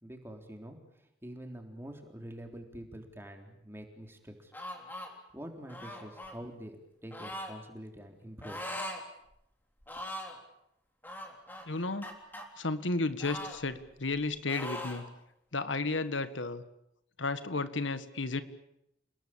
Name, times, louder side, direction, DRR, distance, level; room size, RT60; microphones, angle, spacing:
voice 1, 0.0-4.5 5.1-8.6, equal, 15° right, 4 dB, 3.7 m, -46 dB
sound 1, 4.5-5.1 5.7-6.4 7.1-7.5 8.4-9.0 9.3-9.4 9.8-10.4 11.0-12.4 13.2-14.2 14.5-15.0, left 1 dB, 10° left, 3.8 m, -41 dB
voice 2, 11.7-12.0 12.6-15.0 15.5-16.6 17.2-18.4, left 3 dB, 90° left, 12 dB, 1.6 m, -33 dB
30.0 x 19.0 x 8.8 m, 0.81 s
head